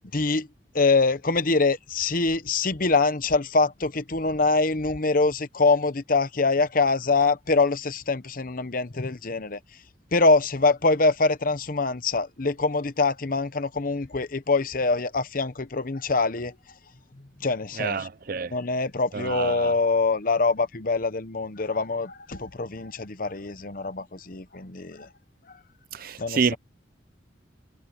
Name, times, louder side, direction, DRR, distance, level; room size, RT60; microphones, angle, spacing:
voice 1, 0.1-0.5 0.7-9.6 10.1-16.5 17.4-18.0 18.5-25.1 26.2-26.6, left 3 dB, 50° left, 1.0 m, -24 dB
voice 2, 17.8-18.5 19.1-19.7 25.9-26.6, right 5 dB, 50° right, 0.6 m, -28 dB
head